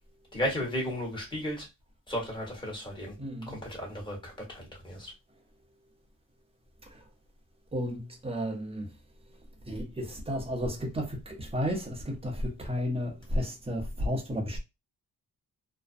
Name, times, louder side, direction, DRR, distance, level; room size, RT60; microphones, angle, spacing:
voice 1, 0.3-1.7 2.1-3.1 3.5-5.1, equal, 15° left, 1.2 m, -34 dB
voice 2, 3.2-3.6 6.8-7.0 7.7-8.9 9.6-14.6, equal, 15° right, 0.7 m, -33 dB
2.5 x 2.1 x 2.4 m
cardioid pair, 120°, 36 cm